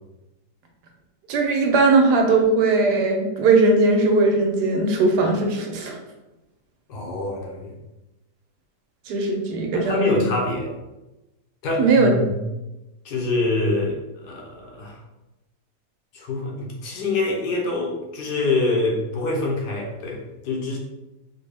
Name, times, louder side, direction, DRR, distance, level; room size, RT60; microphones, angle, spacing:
voice 1, 1.3-6.0 9.1-10.2 11.8-12.1, right 3 dB, 90° right, 2 dB, 1.3 m, -19 dB
voice 2, 6.9-7.7 9.7-10.7 11.6-12.4 13.0-15.0 16.1-20.8, left 2 dB, 85° left, 0 dB, 1.3 m, -25 dB
4.0 x 2.2 x 3.3 m, 1.0 s
omnidirectional pair, 1.7 m